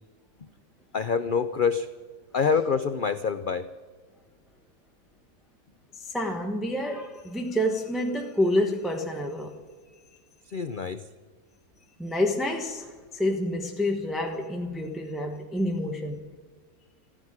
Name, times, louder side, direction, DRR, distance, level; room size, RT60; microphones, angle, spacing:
voice 1, 0.9-1.9 2.3-3.7 10.5-11.0, left 6 dB, 65° left, 10 dB, 0.5 m, -26 dB
voice 2, 5.9-9.5 12.0-16.2, left 1 dB, ahead, 1 dB, 1.1 m, -28 dB
15.5 x 10.0 x 8.7 m, 1.5 s
omnidirectional pair, 1.7 m